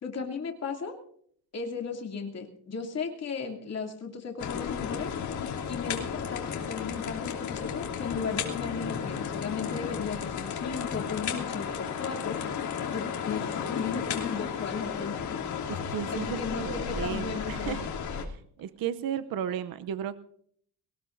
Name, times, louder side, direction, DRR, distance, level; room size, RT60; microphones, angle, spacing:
voice 1, 0.0-0.9 1.5-5.1 5.7-12.4 12.9-15.4 16.1-17.8, left 5 dB, 35° left, 2 dB, 2.7 m, -35 dB
sound 1, 4.4-18.2, left 7 dB, 65° left, 2.9 m, -33 dB
voice 2, 15.7-17.9 18.1-20.2, right 9 dB, 55° right, 12 dB, 0.7 m, -35 dB
22.5 x 18.5 x 2.6 m, 0.63 s
cardioid pair, 165°, 42 cm